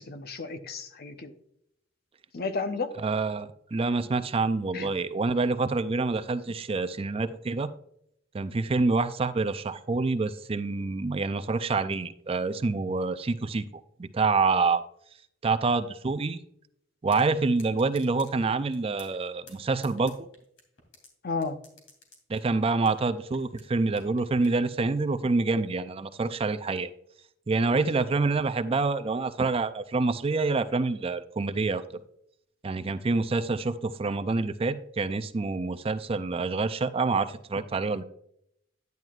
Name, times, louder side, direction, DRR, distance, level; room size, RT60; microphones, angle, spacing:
voice 1, 0.0-1.3 2.3-2.9 4.7-4.9 21.2-21.6 27.7-27.9, left 4 dB, 55° left, 8 dB, 0.8 m, -33 dB
voice 2, 3.0-7.7 8.3-13.7 14.0-14.8 15.4-16.4 17.0-20.3 22.3-26.9 27.5-31.8 32.6-38.0, right 3 dB, 30° right, 11 dB, 0.4 m, -27 dB
sound 1, 17.1-17.2 17.6-18.3 18.7-19.2 19.5-21.1 21.4-23.1 23.3-24.6, left 3 dB, 85° left, 2.7 m, -51 dB
10.5 x 9.3 x 2.4 m, 0.72 s
head